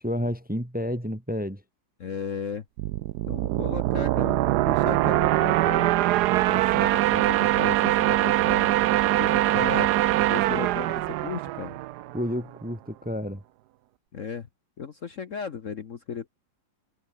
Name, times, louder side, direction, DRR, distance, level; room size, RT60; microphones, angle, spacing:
voice 1, 0.0-1.6 12.1-13.4, equal, 5° right, 1.4 m, -30 dB
voice 2, 2.0-2.6 3.3-5.9 6.5-8.7 9.1-9.9 10.2-11.7 14.1-14.5 14.8-16.3, left 6 dB, 45° left, 1.3 m, -35 dB
sound 1, 2.8-12.3, right 15 dB, 70° right, 1.0 m, -23 dB
omnidirectional pair, 2.1 m